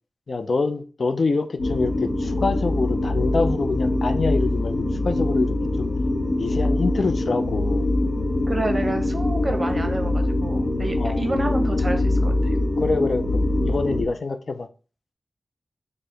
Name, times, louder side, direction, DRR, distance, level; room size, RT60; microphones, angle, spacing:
voice 1, 0.3-5.9 6.4-7.9 11.0-11.2 12.8-14.7, left 3 dB, 60° left, 0.4 m, -26 dB
sound 1, 1.6-14.0, left 1 dB, 80° left, 0.8 m, -23 dB
voice 2, 8.5-12.6, right 2 dB, 35° right, 0.8 m, -29 dB
4.6 x 2.1 x 3.2 m
wide cardioid pair, 75°, 0 cm